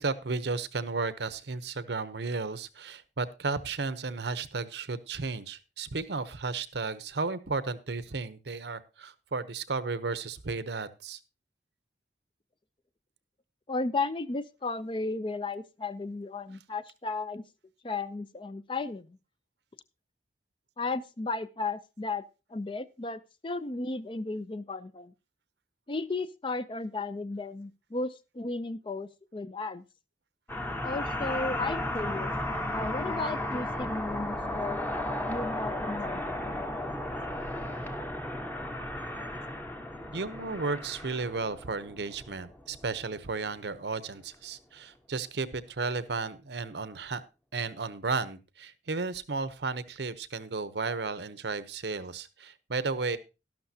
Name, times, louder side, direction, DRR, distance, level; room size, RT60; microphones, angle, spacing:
voice 1, 0.0-11.2 40.1-47.2 47.5-53.2, right 4 dB, 70° right, 15 dB, 0.8 m, -34 dB
voice 2, 13.7-17.4 17.8-19.2 20.8-22.2 22.5-25.1 25.9-29.8 30.8-32.3 32.7-34.9 35.3-36.6, left 3 dB, 30° left, 14 dB, 0.5 m, -34 dB
sound 1, 30.5-43.2, left 1 dB, 10° left, 0.9 m, -34 dB
12.0 x 12.0 x 2.8 m, 0.28 s
head